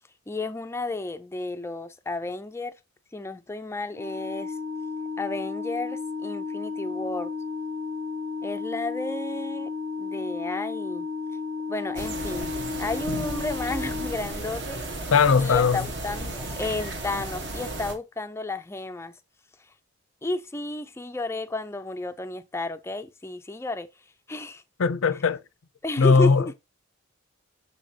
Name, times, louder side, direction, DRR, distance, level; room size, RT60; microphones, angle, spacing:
voice 1, 0.3-2.7 3.1-4.6 5.2-7.3 8.4-9.7 10.0-11.1 11.7-12.5 12.8-15.1 15.4-19.2 19.6-19.7 20.2-23.9 24.3-24.6 25.1-25.2 25.8-26.5, left 2 dB, 10° left, 0.3 m, -32 dB
Organ, 3.9-14.8, left 4 dB, 70° right, 0.8 m, -33 dB
sound 1, 11.9-17.9, right 2 dB, 55° right, 1.2 m, -34 dB
voice 2, 15.1-15.8 24.8-25.4 26.0-26.5, left 5 dB, 75° left, 0.5 m, -19 dB
6.6 x 5.2 x 2.8 m
head